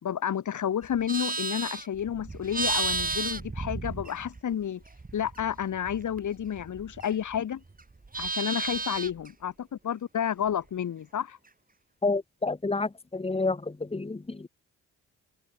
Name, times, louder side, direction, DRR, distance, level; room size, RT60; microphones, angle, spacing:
voice 1, 0.0-4.8 5.1-7.6 8.2-11.4, left 9 dB, 60° left, 2.7 m, -31 dB
Livestock farm animals working animals, 0.8-4.5 4.8-7.4 7.7-9.3, right 3 dB, 25° right, 4.3 m, -33 dB
voice 2, 12.0-13.6 13.9-14.4, left 3 dB, 15° left, 1.8 m, -29 dB
supercardioid pair, 65°, 34 cm